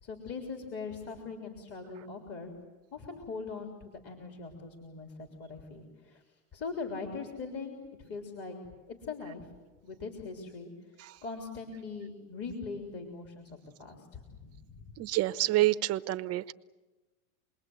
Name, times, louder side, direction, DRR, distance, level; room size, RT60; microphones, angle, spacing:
voice 1, 0.0-2.5 2.9-6.2 6.5-7.8 8.1-8.6 8.9-9.5 9.8-10.7 11.2-15.0, left 4 dB, 30° left, 2 dB, 3.6 m, -41 dB
voice 2, 15.0-16.5, right 16 dB, 35° right, 12 dB, 0.8 m, -27 dB
27.5 x 21.0 x 8.0 m, 1.2 s
supercardioid pair, 125°, 44 cm